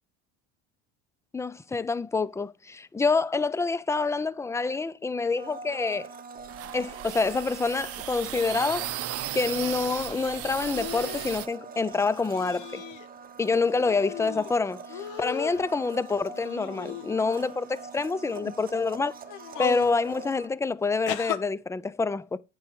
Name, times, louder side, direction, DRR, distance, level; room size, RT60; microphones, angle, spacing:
voice 1, 1.3-6.1 6.7-8.9 9.3-12.8 13.4-19.1 19.6-22.4, left 4 dB, 10° left, 0.4 m, -27 dB
Domestic sounds home sounds, 5.4-20.5, right 5 dB, 25° right, 1.0 m, -44 dB
sound 1, 6.4-11.5, right 13 dB, 45° right, 0.7 m, -36 dB
sound 2, 10.6-11.4 12.3-13.1 13.4-14.5 14.9-15.6 16.3-17.4 18.2-18.5 19.2-19.9 21.1-21.4, left 10 dB, 70° left, 1.2 m, -37 dB
9.3 x 6.1 x 4.6 m
cardioid pair, 120°, 33 cm